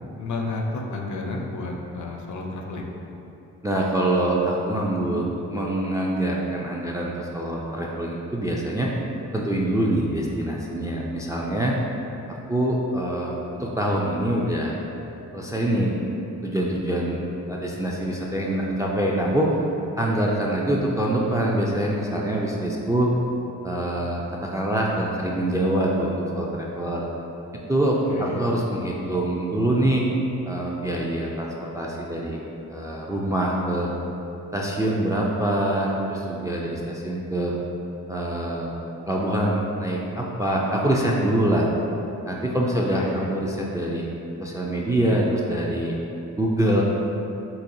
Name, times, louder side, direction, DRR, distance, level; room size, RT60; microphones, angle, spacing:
voice 1, 0.2-2.9 28.1-28.4 42.9-43.3, left 2 dB, 55° left, 1 dB, 0.5 m, -31 dB
voice 2, 3.6-8.9 9.3-11.8 12.5-14.8 15.3-15.9 16.4-17.2 17.5-19.5 20.0-23.1 23.6-27.1 27.7-30.0 30.5-32.4 32.7-33.9 34.5-37.5 38.1-38.7 39.1-41.7 42.2-43.0 43.3-44.1 44.4-45.9 46.4-46.8, right 1 dB, 10° right, -2 dB, 0.3 m, -24 dB
4.1 x 2.2 x 2.6 m, 2.9 s
supercardioid pair, 50°, 36 cm